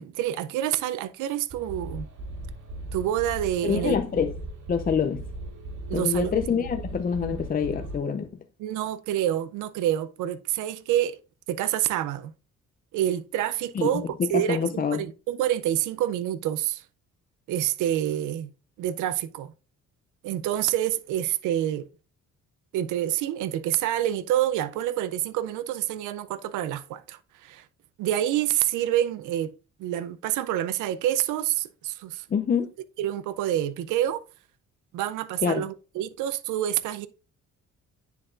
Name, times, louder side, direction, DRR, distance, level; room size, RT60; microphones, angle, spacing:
voice 1, 0.0-2.1 2.9-4.0 5.9-6.4 7.2-7.4 8.6-11.2 11.5-12.3 12.9-16.8 17.5-18.5 18.8-19.5 20.2-21.9 22.7-27.6 28.0-29.5 29.8-32.2 33.0-34.2 34.9-37.1, right 12 dB, 90° right, 0.5 m, -27 dB
sound 1, 1.5-8.0, right 1 dB, 75° right, 1.9 m, -38 dB
voice 2, 3.6-4.3 4.7-5.2 5.9-8.3 13.7-13.9 14.2-15.0 32.3-32.7 35.4-35.6, left 6 dB, 30° left, 0.5 m, -26 dB
9.9 x 4.0 x 2.4 m
cardioid pair, 90°, 30 cm